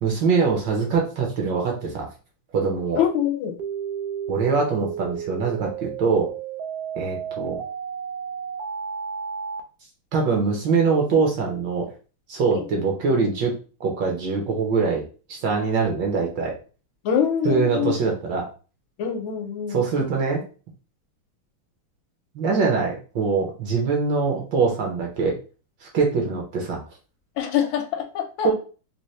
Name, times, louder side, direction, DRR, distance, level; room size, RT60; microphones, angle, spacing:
voice 1, 0.0-2.1 2.5-3.0 4.3-6.3 7.0-7.6 10.1-11.9 12.3-13.5 13.8-15.0 15.3-16.6 17.4-18.5 19.7-20.4 22.3-25.4 25.8-26.8 28.4-28.5, right 4 dB, 65° right, 0 dB, 1.3 m, -23 dB
voice 2, 2.9-3.5 12.5-12.6 17.0-17.9 19.0-19.8 27.4-28.5, left 8 dB, 75° left, 4 dB, 1.4 m, -24 dB
sound 1, 3.6-9.6, right 7 dB, 85° right, 0.9 m, -32 dB
4.1 x 2.1 x 3.1 m, 0.37 s
omnidirectional pair, 2.3 m